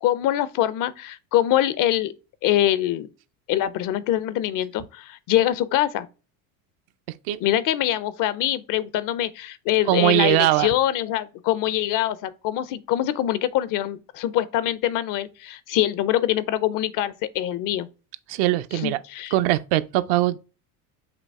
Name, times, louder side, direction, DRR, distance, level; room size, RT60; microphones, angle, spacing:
voice 1, 0.0-2.1 2.4-3.1 3.5-6.1 7.4-17.9 18.8-19.3, left 12 dB, 45° left, 0.5 m, -24 dB
voice 2, 9.9-10.7 18.3-19.0 19.3-20.4, right 16 dB, 65° right, 0.5 m, -21 dB
5.1 x 2.8 x 3.4 m
supercardioid pair, 105°, 45 cm